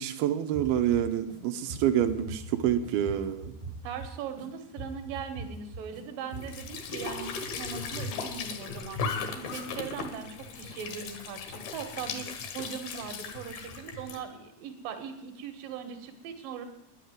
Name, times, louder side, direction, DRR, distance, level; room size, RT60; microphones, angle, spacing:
voice 1, 0.0-3.5, right 10 dB, 85° right, 5 dB, 2.1 m, -27 dB
sound 1, 0.5-1.4 1.7-4.5 4.8-6.0 6.3-6.7, right 3 dB, 35° right, 1.3 m, -42 dB
voice 2, 3.8-16.6, right 7 dB, 60° right, 6 dB, 2.6 m, -40 dB
Squeak / Sink (filling or washing) / Trickle dribble, 6.3-14.2, left 4 dB, 65° left, 3.0 m, -37 dB
sound 2, 6.4-14.1, left 4 dB, 85° left, 4.6 m, -51 dB
10.5 x 9.0 x 9.3 m, 0.82 s
omnidirectional pair, 5.4 m